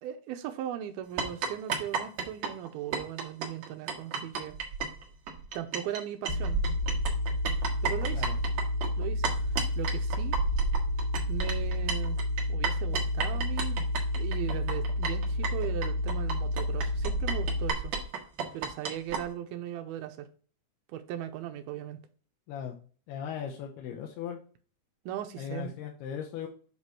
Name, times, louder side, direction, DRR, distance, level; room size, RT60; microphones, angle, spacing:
voice 1, 0.0-4.6 5.5-6.6 7.8-8.3 9.0-10.4 11.3-12.2 12.5-13.8 14.1-18.0 18.5-20.3 20.9-22.0 25.1-25.7, right 11 dB, 80° right, 2.5 m, -38 dB
sound 1, 1.2-6.0 6.2-19.2, right 5 dB, 60° right, 2.0 m, -33 dB
sound 2, 6.3-17.7, left 1 dB, 35° left, 1.0 m, -30 dB
voice 2, 23.1-24.4 25.4-26.5, left 8 dB, 80° left, 2.9 m, -37 dB
8.1 x 3.1 x 5.7 m
omnidirectional pair, 4.7 m